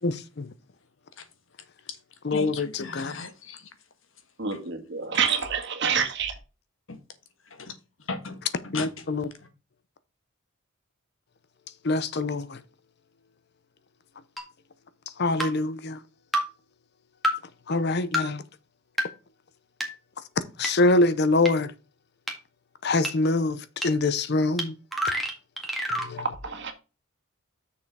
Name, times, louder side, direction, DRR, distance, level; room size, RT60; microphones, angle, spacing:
voice 1, 0.0-0.5 2.2-3.2 8.7-9.3 11.8-12.6 15.2-16.0 17.7-18.4 20.6-21.7 22.8-24.8 25.9-26.3, left 2 dB, 50° left, 0.7 m, -25 dB
voice 2, 2.3-3.6 5.1-5.4 6.9-7.0 7.6-7.7 8.1-9.0, left 4 dB, 70° left, 1.5 m, -36 dB
voice 3, 4.4-6.3 26.4-26.7, right 7 dB, 55° right, 1.8 m, -27 dB
sound 1, 14.4-14.5 15.4-15.5 16.3-16.4 17.2-17.3 18.1-18.2 19.0-19.1 19.8-19.9 20.6-20.7 21.5-21.6 22.3-22.4 23.0-23.1 23.8-23.9 24.6-24.7 24.9-26.1, equal, ahead, 1.9 m, -27 dB
6.7 x 5.5 x 4.7 m
head